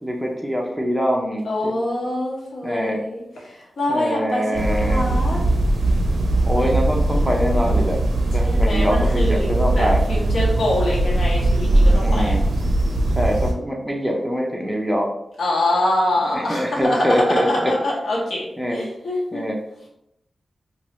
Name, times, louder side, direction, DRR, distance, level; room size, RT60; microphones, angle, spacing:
voice 1, 0.0-1.7 2.6-3.0 3.9-5.0 6.4-8.0 8.3-10.0 12.0-12.4 13.2-15.1 16.3-17.7 18.6-18.8 19.3-19.5, equal, ahead, -1 dB, 0.4 m, -24 dB
voice 2, 1.4-5.4 8.4-9.5 9.7-12.4 15.4-19.4, left 1 dB, 85° left, -4 dB, 1.0 m, -24 dB
sound 1, 4.5-13.5, right 1 dB, 80° right, 0.4 m, -19 dB
3.0 x 2.2 x 2.9 m, 0.80 s
wide cardioid pair, 165°, 0 cm